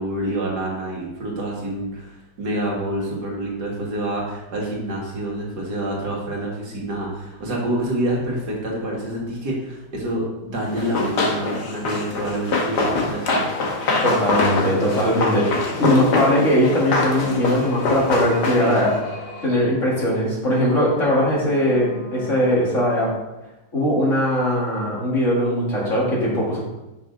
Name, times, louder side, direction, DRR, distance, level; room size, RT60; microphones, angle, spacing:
voice 1, 0.0-13.5 18.6-19.0, right 1 dB, 65° right, -3 dB, 2.3 m, -27 dB
Run, 10.8-18.9, left 3 dB, 70° left, 1.7 m, -24 dB
sound 1, 13.1-23.4, left 3 dB, 85° left, 2.5 m, -38 dB
voice 2, 14.0-18.9 19.4-23.1 23.7-26.6, equal, 45° left, -5 dB, 2.4 m, -20 dB
6.0 x 5.7 x 5.2 m, 0.99 s
omnidirectional pair, 1.9 m